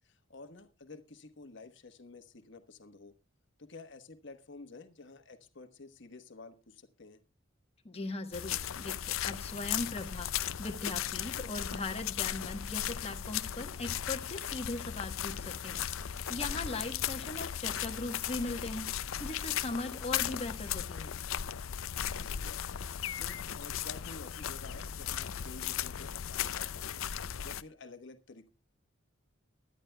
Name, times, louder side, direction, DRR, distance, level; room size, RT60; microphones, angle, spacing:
voice 1, 0.0-3.1 3.6-7.2 16.5-16.9 22.0-22.6 23.2-27.1 27.4-28.5, left 3 dB, 60° left, 8 dB, 1.2 m, -51 dB
voice 2, 7.8-10.3 10.6-21.2, left 2 dB, 30° left, 5 dB, 1.2 m, -39 dB
sound 1, 8.3-27.6, left 10 dB, 85° left, 0.5 m, -36 dB
23.0 x 11.0 x 2.3 m, 0.27 s
head